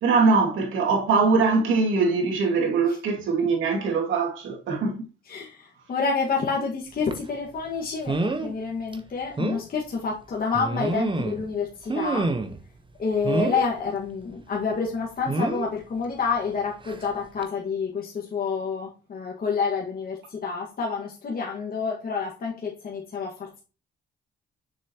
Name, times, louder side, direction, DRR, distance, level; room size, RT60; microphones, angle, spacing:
voice 1, 0.0-5.0, right 4 dB, 80° right, 2.5 m, -22 dB
voice 2, 5.2-12.3 13.0-23.6, left 5 dB, 45° left, 1.8 m, -28 dB
sound 1, 7.1-7.3 8.1-8.5 8.9-9.0 9.4-9.6 10.5-11.5 11.9-12.6 13.2-13.7 15.3-15.7 16.8-17.0 17.4-17.5, right 3 dB, 25° right, 1.1 m, -27 dB
6.7 x 6.6 x 3.0 m
cardioid pair, 90°, 20 cm